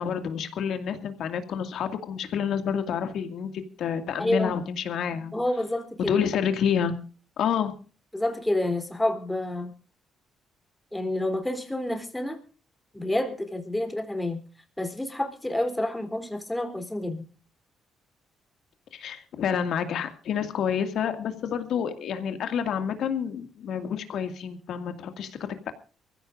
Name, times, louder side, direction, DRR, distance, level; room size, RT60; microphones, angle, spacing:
voice 1, 0.0-3.5 3.8-5.3 6.1-6.9 7.4-7.7 18.9-25.7, left 7 dB, 70° left, 8 dB, 2.2 m, -28 dB
voice 2, 4.2-4.6 5.3-6.1 8.1-9.7 10.9-12.4 12.9-14.4 14.8-17.3, left 1 dB, 10° left, 5 dB, 3.4 m, -28 dB
24.0 x 15.5 x 2.6 m, 0.37 s
cardioid pair, 90°, 0 cm